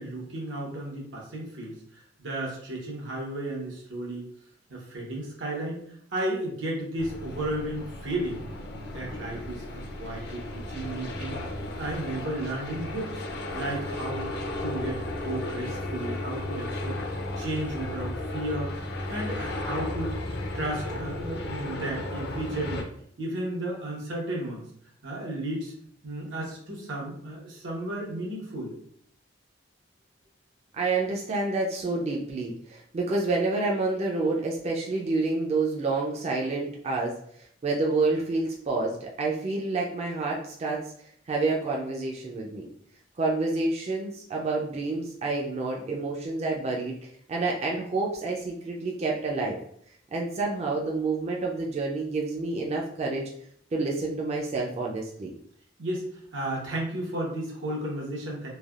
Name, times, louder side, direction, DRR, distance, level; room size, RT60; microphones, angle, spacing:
voice 1, 0.0-4.3 4.7-5.8 6.1-8.4 8.9-11.4 11.8-13.2 13.5-14.3 14.6-17.0 17.4-18.7 19.1-20.2 20.5-22.9 23.2-24.6 25.0-25.7 26.0-28.7 55.8-56.0 56.3-58.5, right 1 dB, 90° right, -2 dB, 1.0 m, -33 dB
sound 1, 7.0-22.8, left 1 dB, 60° left, 0.4 m, -34 dB
voice 2, 30.7-37.1 37.6-40.8 41.3-42.7 43.2-49.6 50.1-53.3 53.7-55.3, right 3 dB, 35° right, -1 dB, 0.3 m, -28 dB
3.2 x 2.2 x 2.3 m, 0.68 s
head